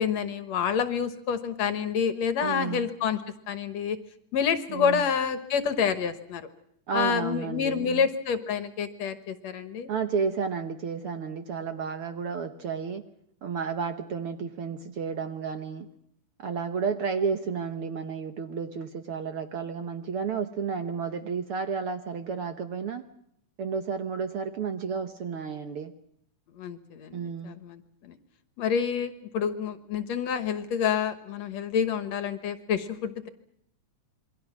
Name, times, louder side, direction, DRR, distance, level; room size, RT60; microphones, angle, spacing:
voice 1, 0.0-3.2 3.5-4.0 4.3-6.5 6.9-9.9 26.6-28.2 28.6-33.3, left 7 dB, 65° left, 11 dB, 2.3 m, -28 dB
voice 2, 2.4-2.9 4.7-5.0 6.9-8.0 9.9-13.0 13.4-15.9 16.4-23.0 23.6-25.9 27.1-27.6, right 6 dB, 60° right, 8 dB, 1.6 m, -32 dB
27.5 x 23.0 x 6.2 m, 0.72 s
omnidirectional pair, 3.6 m